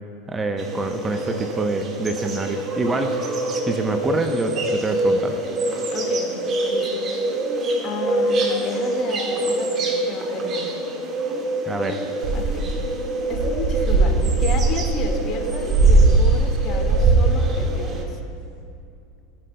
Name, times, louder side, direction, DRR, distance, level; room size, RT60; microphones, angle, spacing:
voice 1, 0.3-5.4 11.7-12.0, right 2 dB, 20° right, 6 dB, 0.8 m, -26 dB
sound 1, 0.6-18.0, right 1 dB, 40° right, 1.8 m, -26 dB
voice 2, 5.9-7.0 7.8-10.8 12.3-12.7 13.3-18.2, left 5 dB, 45° left, 2 dB, 1.8 m, -33 dB
sound 2, 12.2-12.8 13.3-17.3, right 3 dB, 60° right, 2.5 m, -18 dB
19.5 x 10.0 x 2.3 m, 2.5 s
hypercardioid pair, 85°, 0 cm